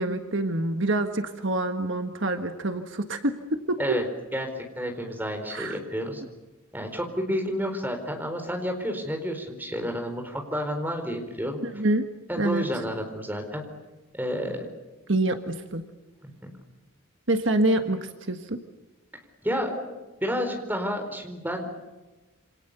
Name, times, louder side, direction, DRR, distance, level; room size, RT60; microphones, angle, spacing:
voice 1, 0.0-3.8 5.5-5.8 11.6-12.0 12.4-12.6 15.1-15.8 17.3-18.6, right 1 dB, 55° right, 6 dB, 1.6 m, -26 dB
voice 2, 4.3-6.2 6.7-11.6 12.3-13.7 14.1-14.6 16.2-16.5 19.4-20.0 20.2-21.8, equal, 10° right, 4 dB, 4.3 m, -30 dB
28.0 x 27.0 x 6.9 m, 1.1 s
head